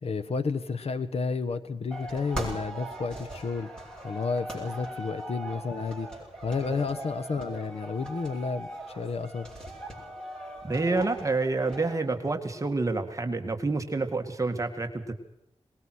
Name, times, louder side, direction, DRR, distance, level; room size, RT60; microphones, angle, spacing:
voice 1, 0.0-3.7 4.0-6.1 6.4-9.5, left 4 dB, 75° left, 11 dB, 1.2 m, -31 dB
sound 1, 1.9-12.0, right 1 dB, 10° left, 6.9 m, -40 dB
voice 2, 6.7-7.1 7.5-7.6 10.6-15.1, right 3 dB, 30° right, 5 dB, 1.9 m, -28 dB
22.5 x 20.5 x 6.3 m, 0.84 s
wide cardioid pair, 130°, 10 cm